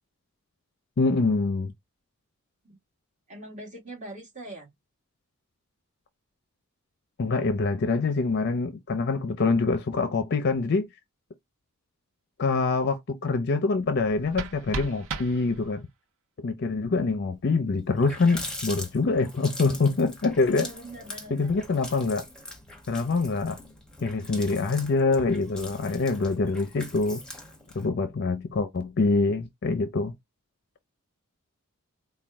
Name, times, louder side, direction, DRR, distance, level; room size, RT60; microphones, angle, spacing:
voice 1, 1.0-1.7 7.2-10.9 12.4-15.9 16.4-20.7 21.3-22.3 22.9-23.6 24.0-27.2 27.7-30.1, left 3 dB, 50° left, 0.5 m, -25 dB
voice 2, 3.3-4.7 20.4-21.6, right 1 dB, 35° right, 1.8 m, -42 dB
sound 1, 13.9-16.0, right 4 dB, 65° right, 0.6 m, -37 dB
Water tap faucet, 17.4-17.5 17.8-27.9, left 1 dB, 5° left, 0.9 m, -42 dB
4.2 x 2.2 x 3.4 m
head